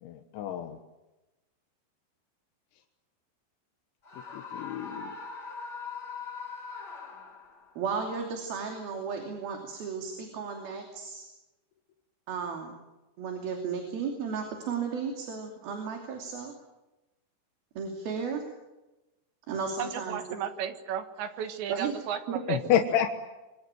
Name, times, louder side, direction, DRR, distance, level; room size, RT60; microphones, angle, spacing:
voice 1, 0.0-0.8 4.3-5.1 22.5-23.1, left 10 dB, 75° left, 4 dB, 3.5 m, -28 dB
Screaming, 4.0-7.7, left 5 dB, 40° left, 1.4 m, -41 dB
voice 2, 7.8-11.3 12.3-12.7 13.2-16.5 17.8-18.4 19.5-20.2 21.7-21.9 22.3-22.4, right 6 dB, 55° right, 3 dB, 4.3 m, -34 dB
voice 3, 19.8-22.8, right 9 dB, 70° right, 8 dB, 3.6 m, -34 dB
26.5 x 23.0 x 9.1 m, 1.1 s
omnidirectional pair, 5.6 m